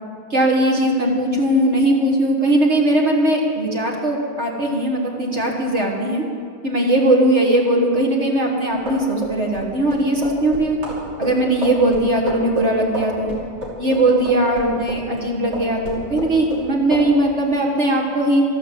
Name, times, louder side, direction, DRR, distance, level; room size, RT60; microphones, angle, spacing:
voice 1, 0.3-6.2 6.6-10.8 11.2-13.4 13.8-18.4, right 1 dB, 40° right, -1 dB, 1.9 m, -19 dB
sound 1, 8.7-15.2 15.5-16.7 16.9-17.1, right 1 dB, 80° right, 3.7 m, -29 dB
13.5 x 11.0 x 7.5 m, 2.3 s
omnidirectional pair, 1.8 m